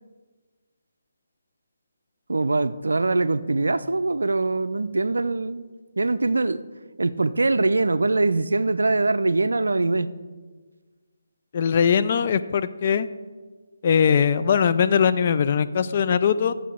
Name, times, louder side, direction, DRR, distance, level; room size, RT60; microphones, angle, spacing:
voice 1, 2.3-5.6 6.0-6.6 7.0-10.1, right 3 dB, 75° right, 13 dB, 0.4 m, -22 dB
voice 2, 11.5-13.1 13.8-16.5, left 7 dB, 40° left, 12 dB, 0.3 m, -20 dB
10.0 x 7.4 x 3.6 m, 1.4 s
figure-of-eight pair, 150°, 0 cm